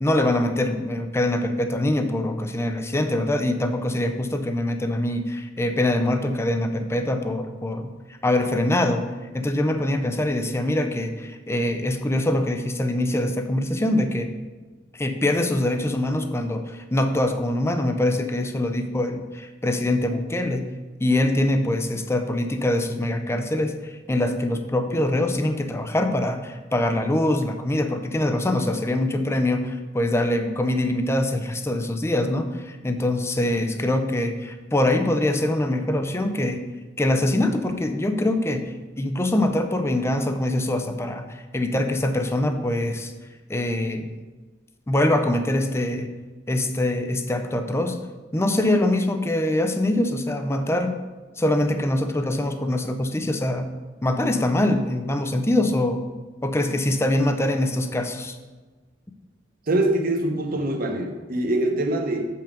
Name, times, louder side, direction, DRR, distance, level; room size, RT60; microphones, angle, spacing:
voice 1, 0.0-7.9 8.2-9.0 9.3-14.3 14.9-20.7 21.0-36.6 37.0-43.1 43.5-44.1 44.9-46.1 46.5-48.0 48.3-51.0 51.4-53.7 54.0-56.0 56.4-58.4, left 1 dB, 15° left, 7 dB, 0.6 m, -24 dB
voice 2, 59.7-62.3, right 1 dB, 50° right, 4 dB, 1.1 m, -24 dB
7.5 x 5.7 x 5.2 m, 1.2 s
head